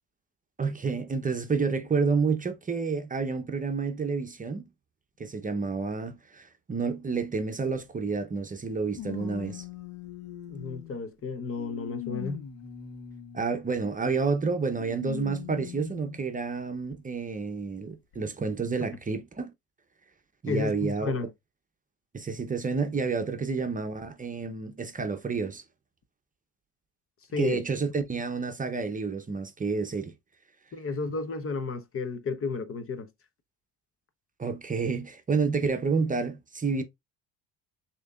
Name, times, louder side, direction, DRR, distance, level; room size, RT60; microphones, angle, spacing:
voice 1, 0.6-4.7 5.2-9.7 13.3-19.5 20.4-21.3 22.1-25.6 27.4-30.1 34.4-36.8, right 4 dB, 20° right, 0.8 m, -29 dB
sound 1, 7.7-7.8 8.9-11.0 11.6-13.6 14.8-16.2 16.9-17.0 18.1-18.2, left 9 dB, 75° left, 1.4 m, -40 dB
voice 2, 10.5-12.4 20.5-21.3 27.3-27.6 30.7-33.1, left 4 dB, 40° left, 0.9 m, -32 dB
6.4 x 3.0 x 2.4 m
supercardioid pair, 80°, 35 cm